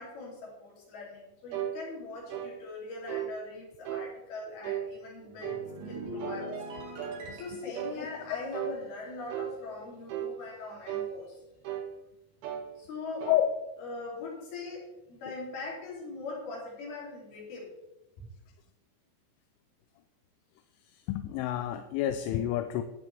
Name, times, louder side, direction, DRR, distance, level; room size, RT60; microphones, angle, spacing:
voice 1, 0.0-5.6 5.9-6.5 7.3-11.4 12.8-13.3 13.8-17.7, left 3 dB, 55° left, -4 dB, 4.5 m, -41 dB
sound 1, 1.5-1.8 2.3-2.5 3.1-3.3 3.8-4.1 4.6-4.9 5.4-5.7 6.2-6.5 7.0-7.2 7.7-8.0 8.5-8.8 9.3-9.5 10.1-10.4 10.9-11.1 11.6-11.9 12.4-12.7 13.2-13.4, right 10 dB, 75° right, 3.5 m, -35 dB
sound 2, 5.2-9.8 10.1-10.4, right 1 dB, 60° right, 3.1 m, -44 dB
voice 2, 7.3-8.4 13.3-13.5 20.8-22.8, left 12 dB, 85° left, 8 dB, 3.0 m, -30 dB
12.0 x 9.2 x 3.4 m, 0.97 s
omnidirectional pair, 5.6 m